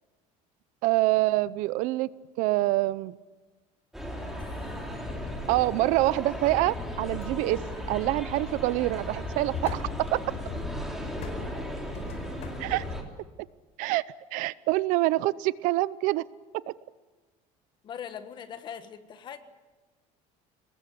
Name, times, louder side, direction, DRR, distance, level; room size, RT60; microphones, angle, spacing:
voice 1, 0.8-2.1 2.4-3.2 5.5-7.6 7.9-10.2 12.6-12.8 13.8-14.0 14.3-16.2, right 18 dB, 65° right, 18 dB, 0.7 m, -26 dB
sound 1, 3.9-13.0, equal, ahead, 3.2 m, -37 dB
sound 2, 4.0-13.0, left 4 dB, 50° left, 4.7 m, -40 dB
voice 2, 4.4-4.9 17.8-19.4, left 8 dB, 30° left, 10 dB, 1.5 m, -42 dB
23.5 x 21.0 x 8.5 m, 1.3 s
cardioid pair, 170°, 15 cm